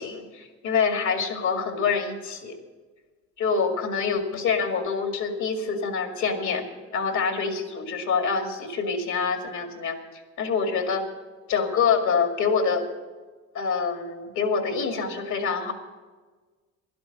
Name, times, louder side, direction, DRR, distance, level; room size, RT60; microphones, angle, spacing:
voice 1, 0.0-2.5 3.4-6.6 6.9-10.0 10.4-11.0 11.5-12.9 13.5-15.7, left 5 dB, 75° left, 5 dB, 2.2 m, -26 dB
12.0 x 11.5 x 6.6 m, 1.3 s
cardioid pair, 90°, 30 cm